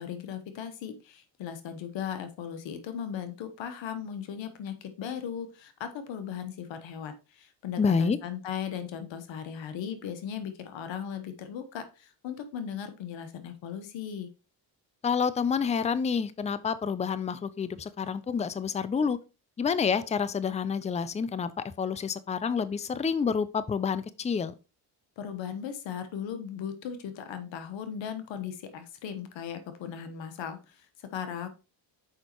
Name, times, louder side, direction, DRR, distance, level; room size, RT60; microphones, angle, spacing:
voice 1, 0.0-14.3 25.2-31.5, left 8 dB, 75° left, 1.1 m, -37 dB
voice 2, 7.8-8.2 15.0-19.2 19.6-24.5, left 6 dB, 15° left, 0.5 m, -28 dB
6.4 x 5.1 x 3.0 m
cardioid pair, 85°, 45 cm